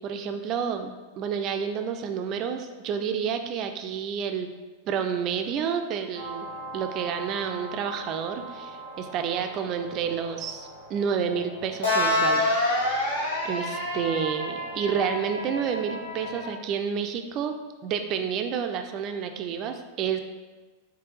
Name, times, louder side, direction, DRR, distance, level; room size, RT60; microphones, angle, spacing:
voice 1, 0.0-4.5 4.9-6.5 6.7-12.5 13.4-17.6 17.8-20.2, right 7 dB, 35° right, 6 dB, 0.4 m, -29 dB
sound 1, 6.1-16.5, left 1 dB, 70° left, 1.3 m, -30 dB
4.8 x 3.3 x 3.1 m, 1.2 s
figure-of-eight pair, 90°, 0 cm